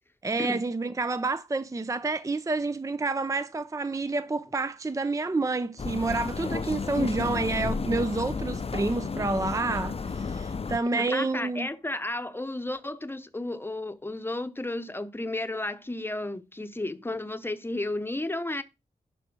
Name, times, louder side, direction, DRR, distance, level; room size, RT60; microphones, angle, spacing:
voice 1, 0.2-11.7, right 3 dB, 20° right, 0.5 m, -29 dB
sound 1, 5.8-10.8, left 4 dB, 40° left, 0.6 m, -32 dB
voice 2, 10.9-18.6, left 2 dB, 15° left, 0.9 m, -33 dB
11.5 x 4.3 x 6.0 m
wide cardioid pair, 115°, 15 cm